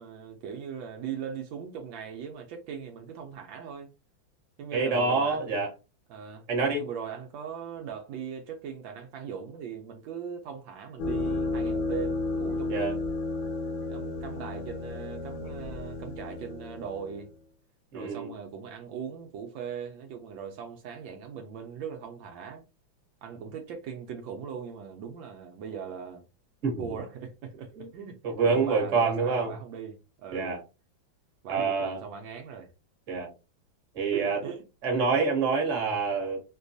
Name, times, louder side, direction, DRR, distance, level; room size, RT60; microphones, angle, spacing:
voice 1, 0.0-3.9 4.6-5.6 6.1-6.4 6.7-13.0 13.8-17.3 17.9-22.6 23.2-26.2 26.8-27.7 27.9-30.6 31.4-32.7 34.1-34.6, right 7 dB, 80° right, 1.3 m, -39 dB
voice 2, 4.7-5.7 6.5-6.8 12.7-12.9 17.9-18.3 26.6-26.9 27.7-29.5 30.3-30.6 31.5-32.0 33.1-33.3 33.9-34.4 34.8-36.4, right 4 dB, 45° right, 1.3 m, -27 dB
sound 1, 11.0-17.3, left 3 dB, 85° left, 1.5 m, -32 dB
4.7 x 2.3 x 2.6 m
omnidirectional pair, 2.2 m